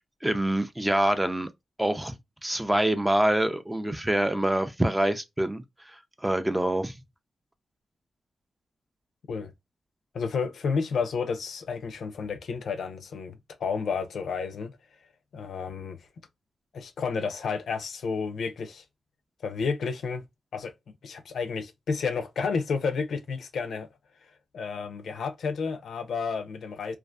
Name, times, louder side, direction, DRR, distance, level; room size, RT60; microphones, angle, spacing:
voice 1, 0.0-1.5 1.8-7.0, right 1 dB, 10° right, 0.3 m, -26 dB
voice 2, 10.1-14.8 15.3-16.0 16.7-18.8 19.4-20.3 20.5-20.7 21.0-23.9 24.5-27.0, left 5 dB, 75° left, 0.4 m, -31 dB
2.5 x 2.4 x 2.2 m
cardioid pair, 95°, 0 cm